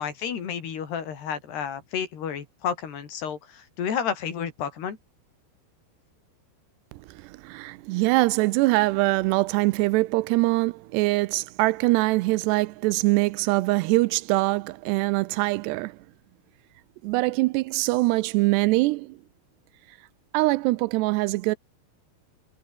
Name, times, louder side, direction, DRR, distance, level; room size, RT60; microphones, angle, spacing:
voice 1, 0.0-5.0, left 7 dB, 70° left, 5.5 m, -31 dB
voice 2, 6.9-16.0 17.0-19.2 20.3-21.6, right 21 dB, 85° right, 2.7 m, -23 dB
omnidirectional pair, 4.9 m